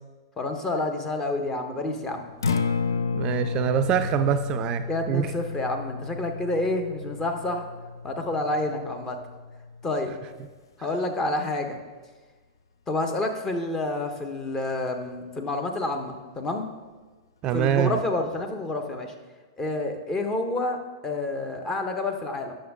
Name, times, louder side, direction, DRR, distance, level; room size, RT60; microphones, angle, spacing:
voice 1, 0.4-2.2 4.9-7.7 8.0-9.2 9.8-10.1 10.8-11.8 12.9-16.7 17.5-19.1 19.6-22.5, left 2 dB, 20° left, 4 dB, 1.1 m, -29 dB
Acoustic guitar, 2.3-10.5, left 4 dB, 75° left, 0.5 m, -32 dB
voice 2, 3.1-5.3 17.4-18.0, right 9 dB, 35° right, 10 dB, 0.4 m, -25 dB
10.0 x 6.4 x 3.6 m, 1.3 s
hypercardioid pair, 105°, 2 cm